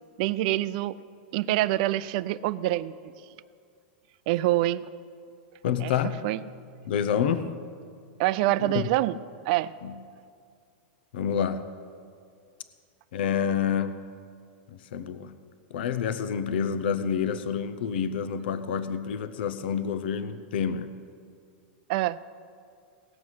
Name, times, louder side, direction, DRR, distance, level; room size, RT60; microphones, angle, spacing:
voice 1, 0.2-0.9 1.3-2.9 4.3-4.9 5.8-5.9 6.2-6.4 8.2-9.2 9.5-9.7 21.9-22.2, right 16 dB, 50° right, 17 dB, 0.4 m, -25 dB
voice 2, 5.6-6.2 6.8-7.5 8.6-8.9 9.8-10.0 11.1-11.7 13.1-14.0 14.7-15.4 15.7-21.0, left 8 dB, 70° left, 11 dB, 0.7 m, -28 dB
18.0 x 7.4 x 6.2 m, 2.3 s
supercardioid pair, 150°, 6 cm